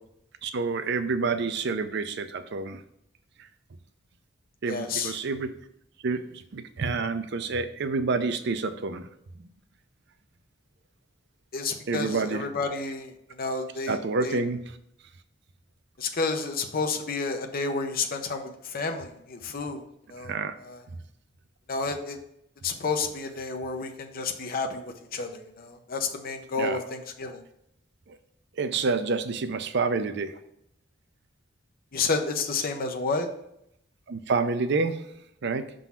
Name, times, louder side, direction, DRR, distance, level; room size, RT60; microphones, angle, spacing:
voice 1, 0.4-2.8 4.6-5.5 6.0-9.1 9.4-9.5 11.9-12.5 13.9-14.6 20.2-20.5 26.6-26.8 28.1-28.2 28.6-30.3 34.1-35.1 35.4-35.7, right 4 dB, 60° right, 10 dB, 0.5 m, -28 dB
voice 2, 4.7-5.2 11.5-14.4 16.0-19.8 20.1-20.3 20.6-20.8 21.7-22.2 22.6-27.4 31.9-33.3, left 4 dB, 50° left, 5 dB, 0.7 m, -30 dB
6.0 x 3.8 x 5.6 m, 0.77 s
head